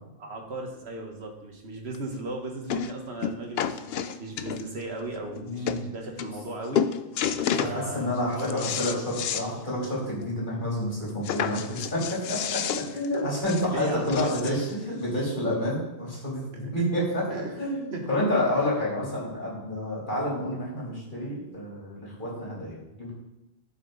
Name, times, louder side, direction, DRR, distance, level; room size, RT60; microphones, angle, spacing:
voice 1, 0.2-6.8 7.6-9.0 12.7-12.8 13.7-14.6 16.5-16.7 17.3-18.0 18.3-18.7, right 2 dB, 75° right, 2 dB, 1.7 m, -37 dB
sound 1, 1.9-2.0 2.7-2.9 3.2-4.8 5.4-5.5 5.7-5.8 6.2-6.5 6.7-7.8 8.2-9.5 9.8-9.9 10.2-10.3 11.2-14.7 15.5-15.6, left 8 dB, 70° left, 0.8 m, -30 dB
voice 2, 5.4-5.8 7.5-11.6 11.9-14.6 15.0-17.3 17.6-23.1, left 1 dB, 50° left, -6 dB, 3.4 m, -29 dB
11.5 x 6.1 x 4.0 m, 0.96 s
omnidirectional pair, 1.1 m